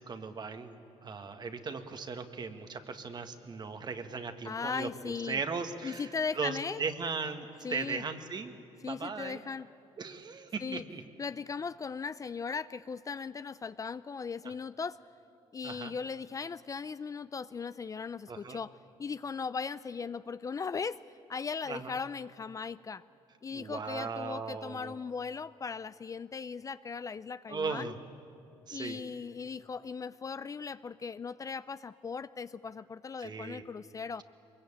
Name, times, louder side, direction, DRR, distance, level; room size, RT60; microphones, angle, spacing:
voice 1, 0.0-4.9 5.2-8.5 8.8-9.4 10.0-11.0 14.4-14.5 15.6-15.9 18.3-18.6 21.7-22.0 23.5-24.9 27.5-28.0 28.7-29.0 33.2-33.6, right 5 dB, 40° right, 7 dB, 1.7 m, -38 dB
voice 2, 4.4-5.4 5.8-6.8 7.6-8.0 8.8-9.7 10.6-10.8 11.2-15.0 15.5-21.0 21.3-23.0 23.4-27.9 28.7-34.2, left 5 dB, 30° left, 15 dB, 0.5 m, -38 dB
23.0 x 22.0 x 8.8 m, 2.7 s
cardioid pair, 85°, 11 cm